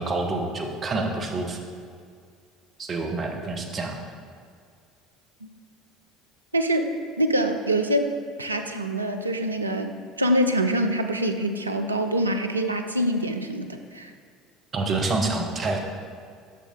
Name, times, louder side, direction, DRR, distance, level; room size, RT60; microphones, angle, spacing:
voice 1, 0.0-1.6 2.8-4.0 14.7-15.8, right 3 dB, 35° right, 2 dB, 0.8 m, -27 dB
voice 2, 6.5-8.1 8.4-14.1, right 1 dB, 85° right, 5 dB, 0.3 m, -25 dB
6.2 x 5.6 x 3.6 m, 2.1 s
figure-of-eight pair, 65°, 0 cm